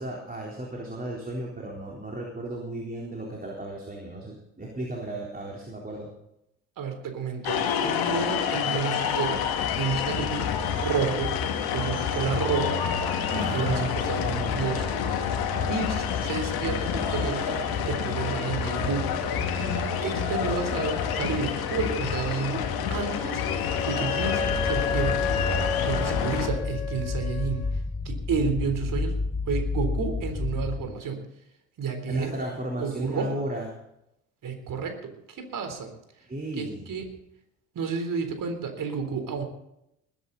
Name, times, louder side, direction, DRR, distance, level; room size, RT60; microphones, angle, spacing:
voice 1, 0.0-6.1 13.3-14.6 32.1-33.7 36.2-36.8, right 1 dB, 20° right, -2 dB, 3.8 m, -35 dB
voice 2, 6.8-10.5 10.8-11.4 11.7-12.8 13.3-14.9 15.2-23.4 23.8-25.2 25.9-27.7 28.1-29.2 29.5-31.2 31.8-32.3 32.8-33.4 34.4-35.9 36.6-37.0 37.8-39.4, right 5 dB, 50° right, 6 dB, 3.7 m, -31 dB
sound 1, 7.4-26.5, left 7 dB, 60° left, 2.2 m, -28 dB
Wind instrument woodwind instrument, 23.0-27.7, left 6 dB, 90° left, 1.4 m, -32 dB
sound 2, 24.4-30.9, left 3 dB, 15° left, 1.1 m, -30 dB
21.0 x 10.5 x 4.1 m, 0.81 s
hypercardioid pair, 55°, 42 cm